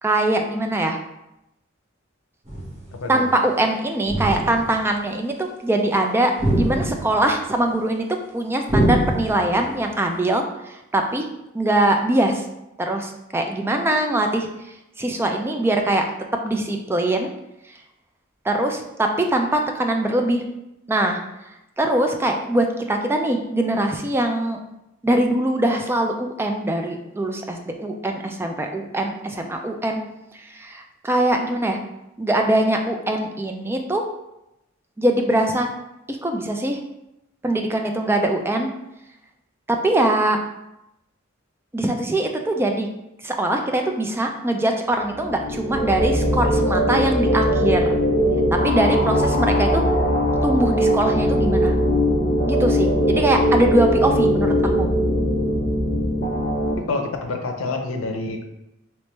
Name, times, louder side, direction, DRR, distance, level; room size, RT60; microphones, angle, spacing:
voice 1, 0.0-1.0 3.1-8.1 8.3-11.3 11.5-12.4 12.8-14.5 15.0-16.1 16.4-17.3 18.4-20.4 20.9-21.2 21.8-24.6 25.0-30.0 30.4-31.8 32.2-34.0 35.0-35.7 36.1-36.8 37.4-38.7 39.7-40.4 41.7-42.9 43.2-48.0 48.6-49.8 50.4-51.7 52.5-54.9, right 1 dB, 10° right, 3 dB, 0.3 m, -22 dB
sound 1, 2.4-2.9 4.1-4.8 6.4-7.3 8.7-9.6, right 1 dB, 35° right, 1.2 m, -23 dB
sound 2, 45.2-56.7, equal, 40° left, 0.5 m, -20 dB
voice 2, 56.9-58.4, left 3 dB, 85° left, 3 dB, 0.6 m, -27 dB
3.2 x 3.0 x 3.2 m, 0.88 s
head